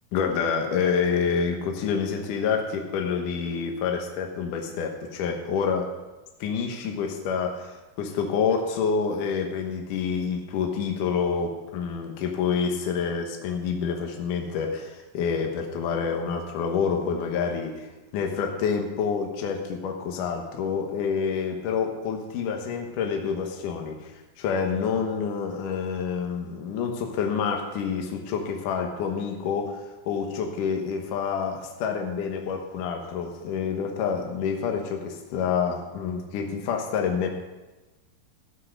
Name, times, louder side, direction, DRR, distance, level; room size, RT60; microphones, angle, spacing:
voice 1, 0.1-5.9 6.4-37.3, left 6 dB, 70° left, 2 dB, 2.6 m, -28 dB
13.5 x 7.6 x 6.6 m, 1.1 s
omnidirectional pair, 4.1 m